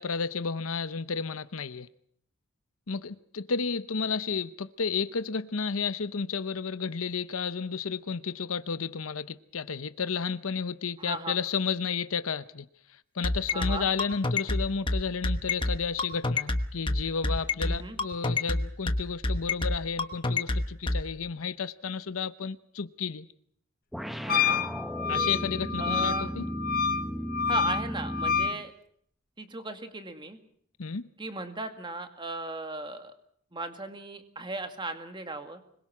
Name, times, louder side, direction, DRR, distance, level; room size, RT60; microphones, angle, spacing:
voice 1, 0.0-1.9 2.9-12.7 13.2-23.3 25.1-26.5 30.8-31.0, left 5 dB, 80° left, 0.9 m, -32 dB
voice 2, 11.0-11.4 13.5-13.9 17.7-18.0 24.2-24.6 25.8-26.3 27.5-28.7 29.4-30.4 31.2-33.1 33.5-35.6, right 2 dB, 25° right, 2.1 m, -36 dB
sound 1, 13.2-21.0, left 2 dB, 25° left, 1.2 m, -27 dB
sound 2, 23.9-28.6, equal, ahead, 0.9 m, -35 dB
Wind instrument woodwind instrument, 24.3-28.6, left 6 dB, 45° left, 1.0 m, -28 dB
25.0 x 22.0 x 6.1 m
head